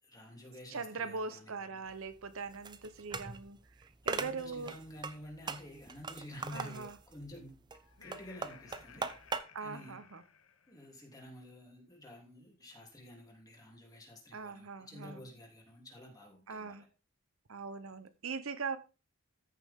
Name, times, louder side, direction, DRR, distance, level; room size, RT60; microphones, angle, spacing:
voice 1, 0.0-1.7 4.0-7.5 8.0-9.1 9.6-10.0 10.7-16.9, left 1 dB, 15° left, 3.0 m, -50 dB
voice 2, 0.7-4.7 6.5-7.0 9.5-10.2 14.3-15.2 16.5-16.8 17.5-18.8, right 4 dB, 70° right, 0.8 m, -41 dB
sound 1, 1.9-9.4, right 4 dB, 20° right, 0.6 m, -41 dB
Laughter, 7.8-11.1, left 6 dB, 70° left, 0.9 m, -58 dB
14.0 x 6.9 x 3.6 m
head